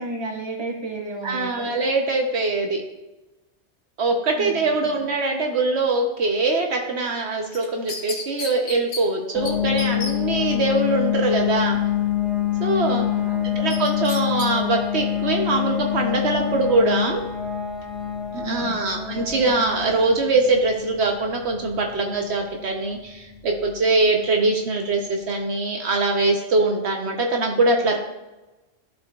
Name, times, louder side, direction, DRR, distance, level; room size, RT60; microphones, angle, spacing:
voice 1, 0.0-1.7 4.4-4.9 13.0-13.6 18.4-18.9, right 2 dB, 25° right, -1 dB, 1.2 m, -33 dB
voice 2, 1.2-2.8 4.0-11.8 12.6-13.0 13.6-17.2 18.3-28.0, right 3 dB, 70° right, 1 dB, 1.1 m, -22 dB
sound 1, 7.5-9.0 9.4-9.5 9.8-10.1 13.7-14.5 14.9-15.0, left 3 dB, 75° left, 1.4 m, -32 dB
sound 2, 9.3-23.9, left 11 dB, ahead, 1.6 m, -26 dB
13.0 x 4.3 x 2.3 m, 1.0 s
omnidirectional pair, 1.2 m